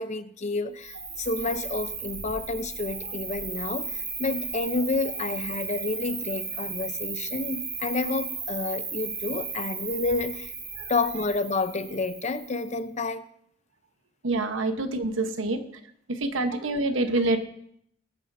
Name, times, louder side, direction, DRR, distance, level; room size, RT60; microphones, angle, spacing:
voice 1, 0.0-10.5 10.9-13.2, left 3 dB, 35° left, 11 dB, 0.6 m, -30 dB
Cricket, 0.8-12.8, right 5 dB, 30° right, 3.9 m, -35 dB
voice 2, 14.2-15.6 16.1-17.4, right 2 dB, 85° right, 7 dB, 1.0 m, -26 dB
21.0 x 9.3 x 2.7 m, 0.70 s
head